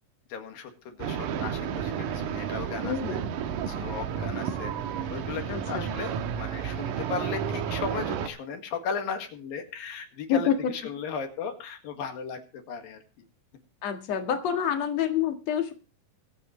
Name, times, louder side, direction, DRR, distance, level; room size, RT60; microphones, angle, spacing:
voice 1, 0.3-3.2 3.6-4.7 5.1-13.0, left 5 dB, 85° left, 5 dB, 3.7 m, -36 dB
sound 1, 1.0-8.3, right 8 dB, 70° right, 2.5 m, -32 dB
voice 2, 2.8-3.2 5.5-5.8 10.3-10.6 13.8-15.7, left 8 dB, 55° left, 5 dB, 2.6 m, -27 dB
24.0 x 8.1 x 3.2 m, 0.34 s
omnidirectional pair, 4.0 m